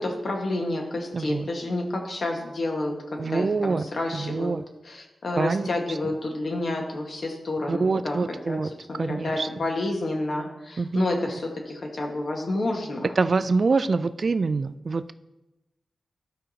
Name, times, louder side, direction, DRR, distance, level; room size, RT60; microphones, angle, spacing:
voice 1, 0.0-4.5 4.8-8.2 8.5-8.6 8.9-13.1, left 2 dB, 60° left, 1 dB, 1.5 m, -29 dB
voice 2, 1.1-1.5 3.2-3.9 4.1-4.6 5.4-5.7 7.7-8.7 9.0-9.5 10.8-11.1 13.2-15.1, right 4 dB, 50° right, 12 dB, 0.3 m, -25 dB
13.5 x 5.1 x 2.9 m, 1.0 s
wide cardioid pair, 90°, 0 cm